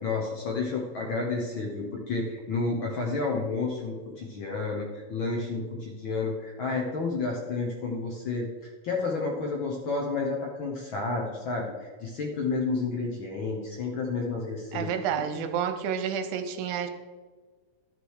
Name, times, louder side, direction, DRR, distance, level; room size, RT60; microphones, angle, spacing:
voice 1, 0.0-14.9 15.3-15.4, left 3 dB, 60° left, 0 dB, 1.4 m, -31 dB
voice 2, 14.7-16.9, right 8 dB, 85° right, 8 dB, 2.2 m, -30 dB
11.5 x 6.2 x 4.8 m, 1.4 s
omnidirectional pair, 3.4 m